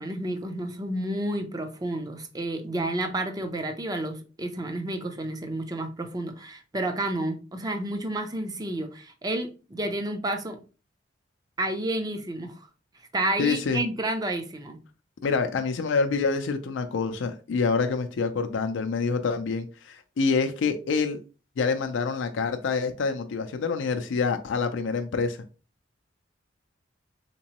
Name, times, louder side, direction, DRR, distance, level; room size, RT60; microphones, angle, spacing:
voice 1, 0.0-10.6 11.6-12.5 13.1-14.8, right 1 dB, 20° right, 0.5 m, -30 dB
voice 2, 13.4-13.8 15.2-21.2 21.6-25.4, left 4 dB, 75° left, 0.4 m, -26 dB
3.6 x 3.0 x 2.9 m
head